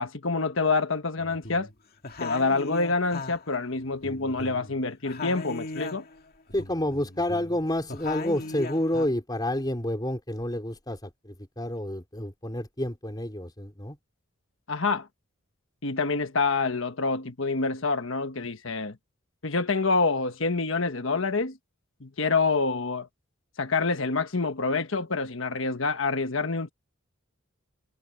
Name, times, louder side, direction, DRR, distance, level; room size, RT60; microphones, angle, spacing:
voice 1, 0.0-1.7 2.2-6.1 14.7-15.1 15.8-19.0 19.4-21.6 22.0-23.1 23.6-26.7, left 3 dB, 70° left, 1.3 m, -27 dB
sound 1, 1.2-1.7 2.0-4.8 5.0-6.2 6.5-9.1, left 3 dB, 50° left, 2.2 m, -38 dB
voice 2, 6.5-14.0, left 1 dB, 20° left, 4.2 m, -29 dB
head